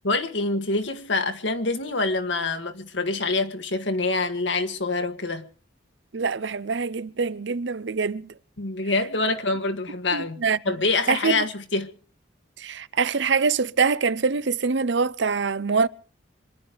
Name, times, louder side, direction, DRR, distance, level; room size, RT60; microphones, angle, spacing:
voice 1, 0.0-5.4 8.6-11.9, left 3 dB, 75° left, 1.9 m, -26 dB
voice 2, 6.1-8.3 10.1-10.6 11.1-11.4 12.6-15.9, right 5 dB, 70° right, 0.7 m, -24 dB
26.0 x 11.0 x 5.1 m
head